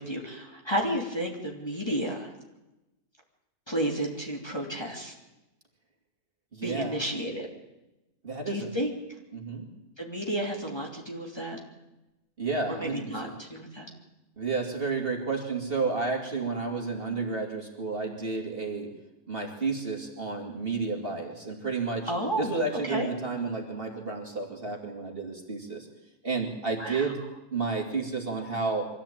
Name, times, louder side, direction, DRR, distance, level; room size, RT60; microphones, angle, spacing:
voice 1, 0.0-2.3 3.7-5.1 6.6-7.5 8.5-8.9 10.0-11.6 12.7-13.9 22.1-22.5 22.8-23.1 26.8-27.1, equal, 15° left, -1 dB, 3.1 m, -32 dB
voice 2, 6.5-7.0 8.2-8.7 9.3-9.7 12.4-13.3 14.4-18.9 19.3-22.1 22.4-25.9 26.2-27.2 27.5-28.9, right 4 dB, 35° right, 2 dB, 2.9 m, -31 dB
24.0 x 15.0 x 8.8 m, 0.98 s
omnidirectional pair, 1.6 m